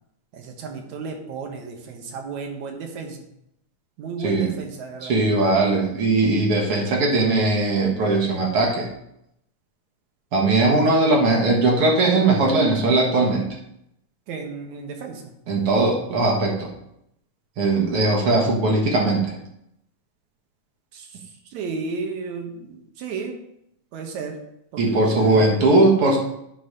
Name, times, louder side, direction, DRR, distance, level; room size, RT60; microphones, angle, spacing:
voice 1, 0.3-3.3 4.0-5.1 14.3-15.2 20.9-21.2 21.5-23.3 23.9-24.4 24.7-25.6, right 4 dB, 70° right, 3 dB, 2.4 m, -33 dB
voice 2, 4.2-4.5 5.0-8.9 10.3-13.4 15.5-16.7 17.6-19.3 24.8-26.2, right 2 dB, 55° right, 0 dB, 2.1 m, -19 dB
9.8 x 4.1 x 5.3 m, 0.79 s
omnidirectional pair, 3.6 m